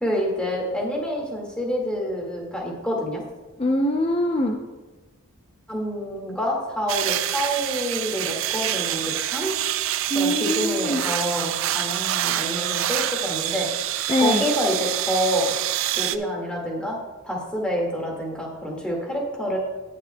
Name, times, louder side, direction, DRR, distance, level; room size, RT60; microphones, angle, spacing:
voice 1, 0.0-3.2 5.7-9.5 10.1-13.7 14.2-15.6 16.0-17.0 17.2-19.6, equal, 5° left, -2 dB, 1.9 m, -27 dB
voice 2, 3.6-4.6 10.1-11.0 14.1-14.5, left 1 dB, 25° left, 3 dB, 0.5 m, -22 dB
sound 1, 6.9-16.2, right 12 dB, 65° right, 0.4 m, -26 dB
18.0 x 7.3 x 2.2 m, 1.2 s
head